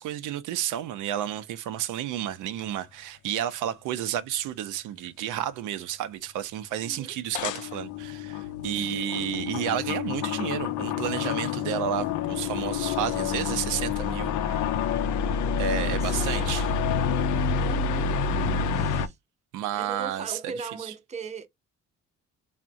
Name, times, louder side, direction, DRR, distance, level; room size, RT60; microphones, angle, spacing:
voice 1, 0.0-14.6 15.6-16.7 19.5-20.9, right 11 dB, 85° right, 0.5 m, -31 dB
sound 1, 2.6-2.7 7.3-19.1, left 6 dB, 80° left, 0.5 m, -28 dB
voice 2, 6.8-7.1 8.6-9.1 15.8-16.1 16.4-16.7 17.6-18.2 18.7-19.2 19.8-21.5, right 5 dB, 25° right, 0.5 m, -40 dB
3.5 x 2.1 x 2.5 m
cardioid pair, 90°, 30 cm